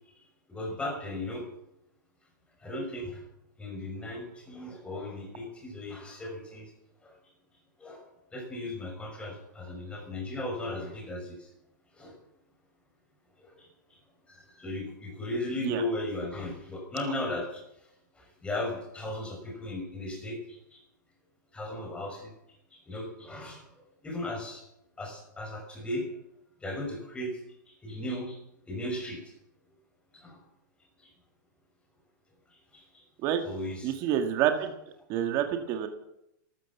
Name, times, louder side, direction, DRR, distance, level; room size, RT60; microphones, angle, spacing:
voice 1, 0.5-1.5 2.6-3.2 3.6-6.7 7.0-7.1 7.8-8.1 8.3-11.5 11.9-12.2 13.4-13.7 14.3-17.6 18.2-20.8 21.5-22.3 22.7-23.7 24.0-24.6 25.0-26.1 26.6-27.4 27.7-28.4 28.7-29.2 30.1-30.4 32.7-32.8 33.4-33.9, left 1 dB, 10° left, 1 dB, 5.6 m, -36 dB
voice 2, 33.8-34.7 35.1-35.9, right 10 dB, 35° right, 7 dB, 1.8 m, -27 dB
13.0 x 13.0 x 7.2 m, 0.81 s
hypercardioid pair, 145°, 10 cm